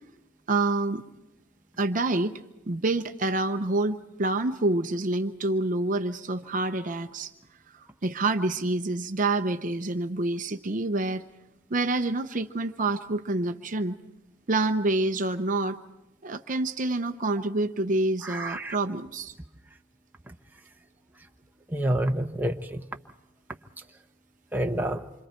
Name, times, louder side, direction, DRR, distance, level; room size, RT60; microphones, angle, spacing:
voice 1, 0.5-1.0 1.8-2.4 2.7-7.3 8.0-11.2 11.7-14.0 14.5-15.8 16.2-19.3, right 2 dB, 40° right, 8 dB, 0.7 m, -27 dB
voice 2, 18.2-18.7 21.7-22.8 24.5-25.0, right 1 dB, 10° right, 3 dB, 0.8 m, -28 dB
27.5 x 25.0 x 4.4 m, 0.96 s
head